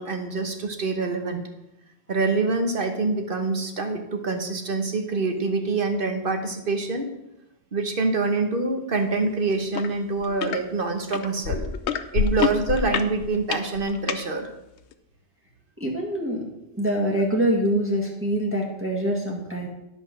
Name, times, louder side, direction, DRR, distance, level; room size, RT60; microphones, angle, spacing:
voice 1, 0.0-1.4 2.1-7.1 7.7-11.7 12.1-14.5, right 3 dB, 55° right, 5 dB, 1.2 m, -25 dB
sound 1, 9.7-9.9 10.2-10.6 11.1-14.2 14.9-15.0, left 8 dB, 90° left, 1.0 m, -26 dB
voice 2, 15.8-16.4 16.8-19.7, right 1 dB, 10° right, -2 dB, 1.7 m, -25 dB
11.0 x 5.5 x 6.0 m, 0.88 s
omnidirectional pair, 1.1 m